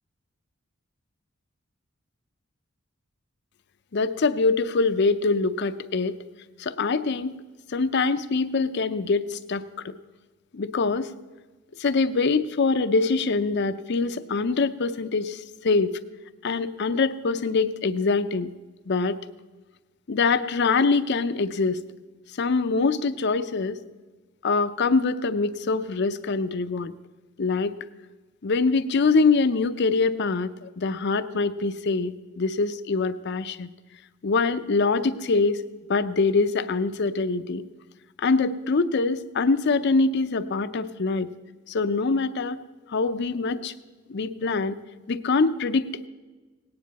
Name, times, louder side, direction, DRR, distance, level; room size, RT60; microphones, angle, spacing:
voice 1, 3.9-6.2 6.6-7.4 7.7-9.9 10.5-11.1 11.8-16.0 16.4-18.5 18.9-19.2 20.1-21.8 22.4-23.8 24.4-26.9 27.4-27.7 28.4-33.7 34.2-35.6 35.9-37.6 38.2-41.3 41.7-42.6 42.9-43.7 44.1-44.8 45.1-46.1, left 4 dB, 55° left, 12 dB, 0.5 m, -24 dB
18.0 x 9.6 x 4.1 m, 1.3 s
head